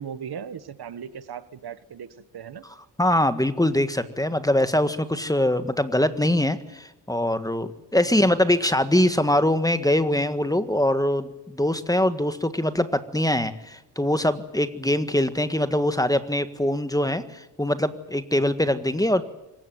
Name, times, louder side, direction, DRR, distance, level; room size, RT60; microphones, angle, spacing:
voice 1, 0.0-2.1 2.3-2.6 8.2-8.4, right 7 dB, 60° right, 13 dB, 1.6 m, -37 dB
voice 2, 3.0-19.2, left 1 dB, 10° left, 11 dB, 1.7 m, -23 dB
25.5 x 15.5 x 9.3 m, 0.97 s
cardioid pair, 95°, 43 cm